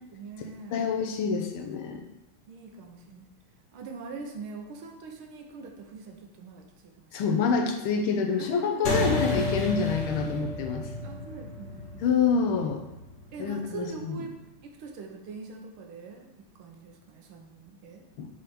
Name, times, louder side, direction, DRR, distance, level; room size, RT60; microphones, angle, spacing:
voice 1, 0.1-0.8 2.5-3.3 3.7-7.4 8.4-9.0 11.0-12.0 13.3-14.4 14.6-18.1, right 4 dB, 70° right, 2 dB, 1.8 m, -43 dB
voice 2, 0.7-2.0 7.1-10.9 12.0-12.8 13.4-14.2 18.2-18.3, left 5 dB, 75° left, 4 dB, 1.6 m, -27 dB
sound 1, 8.8-13.7, left 2 dB, 45° left, 1.2 m, -31 dB
7.2 x 4.2 x 5.1 m, 0.92 s
omnidirectional pair, 2.4 m